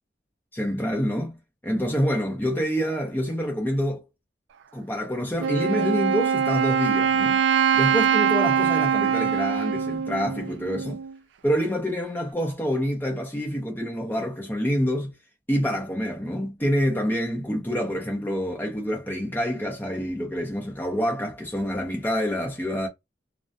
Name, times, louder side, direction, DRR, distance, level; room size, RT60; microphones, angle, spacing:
voice 1, 0.5-1.3 1.6-4.0 4.7-7.4 7.7-11.0 11.4-15.1 15.5-22.9, equal, 10° left, 0.6 m, -27 dB
Wind instrument woodwind instrument, 5.4-11.1, right 7 dB, 85° right, 0.3 m, -23 dB
2.3 x 2.0 x 2.6 m
head